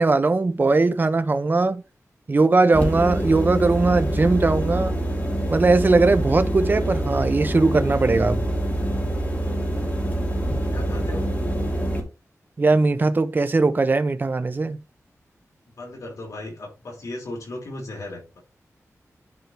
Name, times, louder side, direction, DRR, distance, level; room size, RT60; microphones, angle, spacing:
voice 1, 0.0-1.8 2.3-5.0 5.5-8.5 12.6-14.8, right 3 dB, 35° right, 0.7 m, -19 dB
sound 1, 2.7-12.0, right 1 dB, 30° left, 3.0 m, -25 dB
voice 2, 10.6-11.3 15.8-18.4, left 1 dB, 80° left, 4.5 m, -36 dB
10.5 x 4.6 x 3.3 m
wide cardioid pair, 105°, 6 cm